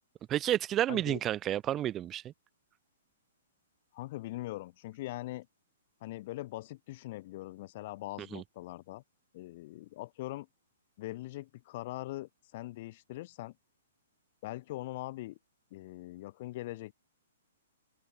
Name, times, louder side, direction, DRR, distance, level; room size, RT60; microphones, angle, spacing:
voice 1, 0.3-2.2 8.3-8.4, right 12 dB, 25° right, 0.4 m, -30 dB
voice 2, 0.9-1.2 3.9-5.5 6.0-9.0 9.3-10.5 11.0-13.5 14.4-15.4 15.7-16.9, left 17 dB, 50° left, 2.0 m, -41 dB
open air
hypercardioid pair, 125°, 0 cm